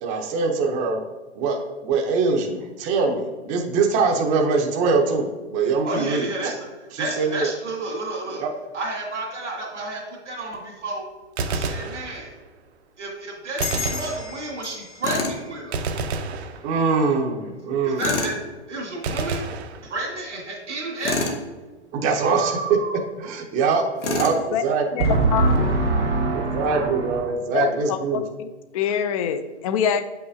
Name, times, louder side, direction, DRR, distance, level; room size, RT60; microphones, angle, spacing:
voice 1, 0.0-1.0 1.4-6.5 6.9-7.5 8.3-8.5 16.6-18.0 21.9-22.8 23.2-25.0 26.3-28.2, right 4 dB, 25° right, 2 dB, 0.6 m, -23 dB
voice 2, 5.8-6.7 7.0-8.4 8.7-11.0 11.5-12.3 13.0-15.8 17.8-18.3 18.7-19.4 19.8-21.3 22.2-23.0 25.0-27.2, right 2 dB, 85° right, -2 dB, 1.9 m, -27 dB
Gunshot gunfire, 11.2-12.6 13.6-14.8 15.7-17.2 19.0-20.4, right 4 dB, 65° right, 0.7 m, -30 dB
sound 1, 13.6-16.7, left 7 dB, 65° left, 1.8 m, -35 dB
Tools, 15.0-15.4 18.0-18.4 21.0-21.4 24.0-24.4, left 3 dB, 85° left, 1.3 m, -26 dB
voice 3, 24.9-25.5 27.5-28.5 28.7-30.0, left 8 dB, 30° left, 10 dB, 0.4 m, -25 dB
7.8 x 5.6 x 2.7 m, 1.3 s
hypercardioid pair, 135°, 34 cm